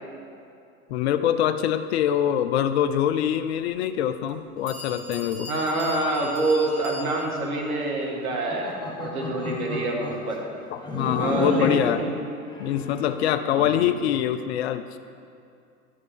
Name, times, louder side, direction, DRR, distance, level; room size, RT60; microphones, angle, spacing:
voice 1, 0.9-5.5 10.7-12.0 12.6-15.0, left 10 dB, 50° left, 11 dB, 0.5 m, -24 dB
Bell, 4.3-4.4 4.7-7.5, left 2 dB, 45° right, 2.2 m, -40 dB
voice 2, 5.5-10.4 11.2-12.1 13.5-13.7, right 2 dB, 70° right, 0 dB, 1.9 m, -26 dB
sound 1, 8.2-10.3 10.8-12.0 12.5-13.9, left 2 dB, 10° left, 0.9 m, -33 dB
10.5 x 7.9 x 3.7 m, 2.5 s
figure-of-eight pair, 95°, 45 cm